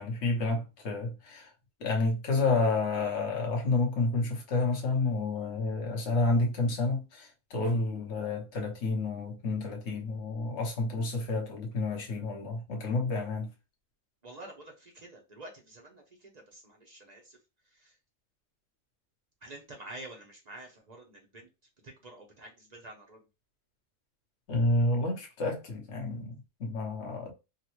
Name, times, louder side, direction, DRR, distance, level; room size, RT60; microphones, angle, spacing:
voice 1, 0.0-1.5 1.8-13.5 24.5-27.3, left 3 dB, 50° left, 1.1 m, -30 dB
voice 2, 14.2-17.4 17.7-17.9 19.4-21.5 21.8-23.2, right 2 dB, 60° right, 0.4 m, -48 dB
3.8 x 2.2 x 2.9 m
omnidirectional pair, 1.7 m